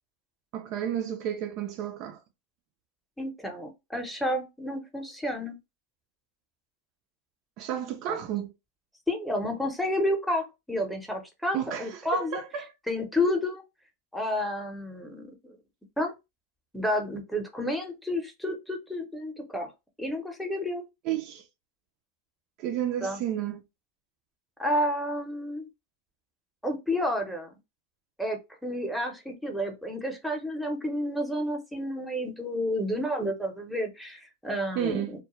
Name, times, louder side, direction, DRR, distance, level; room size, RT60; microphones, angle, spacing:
voice 1, 0.5-2.2 7.6-8.5 11.5-12.7 21.0-21.4 22.6-23.6 34.8-35.2, right 10 dB, 50° right, 0.4 m, -31 dB
voice 2, 3.2-5.6 8.1-8.2 9.1-12.4 12.9-13.6 14.1-15.3 16.0-16.1 16.7-19.7 20.0-20.8 23.0-23.2 24.6-25.7 26.6-27.5 28.2-35.2, left 1 dB, ahead, 0.7 m, -30 dB
2.2 x 2.1 x 2.9 m
hypercardioid pair, 125°, 0 cm